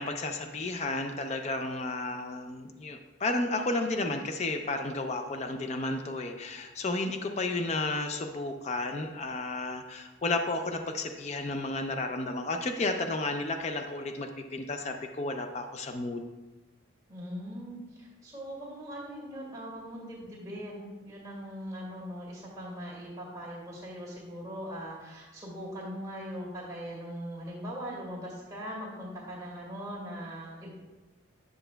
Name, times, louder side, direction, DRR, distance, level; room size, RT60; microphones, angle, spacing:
voice 1, 0.0-16.3, left 2 dB, 35° left, 6 dB, 0.4 m, -32 dB
voice 2, 17.1-30.7, equal, 15° right, -5 dB, 2.0 m, -40 dB
9.9 x 6.8 x 2.2 m, 1.2 s
head